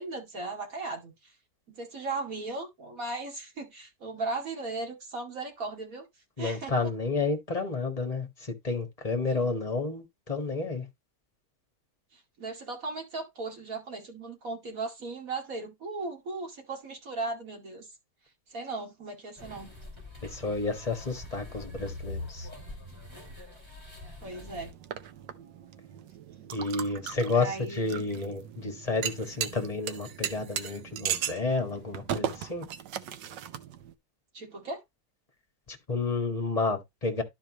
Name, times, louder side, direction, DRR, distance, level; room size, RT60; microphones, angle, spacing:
voice 1, 0.0-1.3 1.7-6.1 6.4-6.7 12.1-17.9 18.5-19.7 24.2-24.7 27.3-28.0 34.3-34.8, right 3 dB, 50° right, 2.7 m, -37 dB
voice 2, 6.4-8.3 8.6-10.8 20.2-22.5 26.5-32.6 35.7-37.2, left 3 dB, 20° left, 1.5 m, -30 dB
sound 1, 19.4-24.7, left 2 dB, 15° right, 2.9 m, -43 dB
sound 2, 24.2-33.9, right 9 dB, 85° right, 1.4 m, -37 dB
11.5 x 4.8 x 3.0 m
omnidirectional pair, 1.9 m